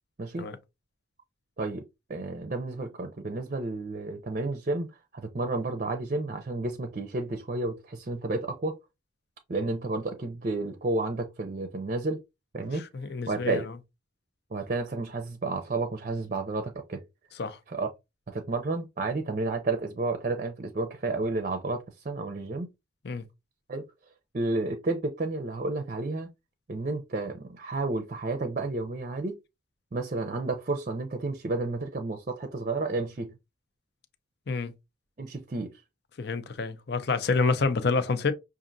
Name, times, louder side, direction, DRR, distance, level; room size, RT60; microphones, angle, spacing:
voice 1, 2.1-4.9 5.1-8.8 9.5-12.2 12.5-12.8 13.3-13.7 14.5-17.0 17.7-17.9 18.3-22.7 23.7-23.8 24.3-26.3 26.7-29.4 29.9-33.3 35.2-35.8, right 2 dB, 40° right, 0.5 m, -31 dB
voice 2, 12.8-13.7 17.4-17.6 23.0-23.2 34.5-34.7 36.2-38.3, left 4 dB, 55° left, 0.5 m, -28 dB
6.1 x 2.5 x 2.6 m
head